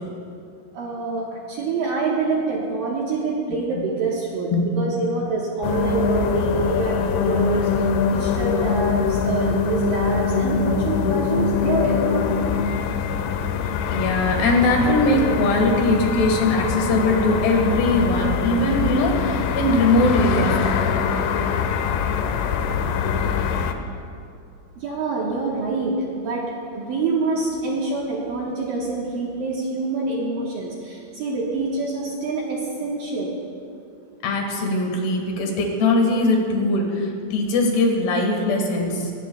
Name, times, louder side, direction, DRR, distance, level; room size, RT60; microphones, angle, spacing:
voice 1, 0.7-7.7 8.0-12.5 24.8-26.5 26.7-33.3, right 3 dB, 65° right, -4 dB, 2.3 m, -26 dB
sound 1, 5.6-23.7, left 6 dB, 90° left, 2.4 m, -23 dB
voice 2, 13.9-20.8 34.2-39.1, left 2 dB, 65° left, 1 dB, 3.4 m, -21 dB
19.5 x 17.0 x 2.3 m, 2.4 s
omnidirectional pair, 5.6 m